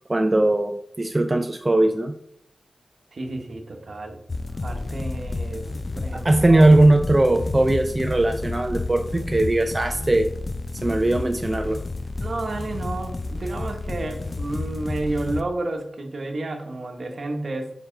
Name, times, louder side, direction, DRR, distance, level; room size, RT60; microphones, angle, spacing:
voice 1, 0.1-2.1 6.2-10.3 10.8-11.8, right 2 dB, 25° right, 6 dB, 0.4 m, -19 dB
voice 2, 3.1-4.2 4.6-5.6 6.0-6.6 12.2-17.7, right 2 dB, 60° right, 5 dB, 1.0 m, -31 dB
sound 1, 4.3-15.4, left 2 dB, 35° left, 0.4 m, -31 dB
5.4 x 4.7 x 3.8 m, 0.71 s
wide cardioid pair, 70°, 0 cm